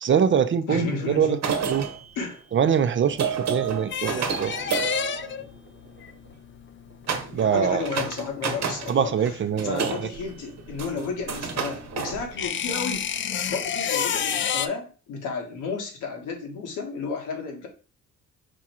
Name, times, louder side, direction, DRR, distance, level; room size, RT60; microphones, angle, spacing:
voice 1, 0.0-1.4 1.7-1.9 2.5-4.6 7.3-7.9 8.9-10.1, right 8 dB, 40° right, 0.5 m, -23 dB
voice 2, 0.7-1.4 2.1-2.4 7.2-9.3 9.6-13.0 13.3-17.7, left 4 dB, 90° left, 1.4 m, -32 dB
sound 1, 1.3-6.0 7.1-7.5 7.8-9.0 9.2-12.8, right 6 dB, 60° right, 1.0 m, -31 dB
sound 2, 3.2-9.8 10.0-14.7, left 8 dB, 40° left, 0.4 m, -30 dB
5.0 x 2.4 x 4.3 m
cardioid pair, 90°, 30 cm